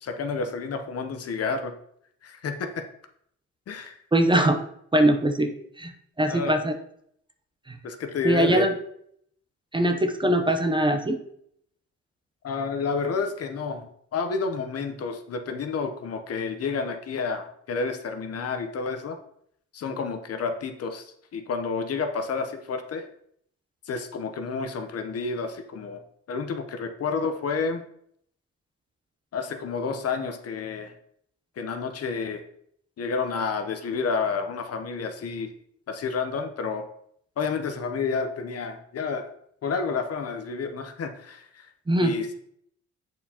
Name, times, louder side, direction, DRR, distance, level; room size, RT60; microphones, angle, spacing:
voice 1, 0.0-1.7 2.2-2.8 3.7-4.0 6.3-6.5 7.8-8.7 12.4-19.2 19.7-23.1 23.9-26.0 26.3-27.8 29.3-30.9 31.6-32.4 33.0-35.5 35.9-36.9 37.4-39.3 39.6-41.7 42.0-42.3, left 5 dB, 55° left, 7 dB, 0.8 m, -30 dB
voice 2, 4.1-4.6 4.9-5.5 5.8-5.9 6.2-6.7 7.7-7.8 8.2-8.8 9.7-11.2 41.9-42.3, right 1 dB, 15° right, 5 dB, 0.6 m, -22 dB
8.0 x 4.4 x 2.8 m, 0.69 s
cardioid pair, 90°, 30 cm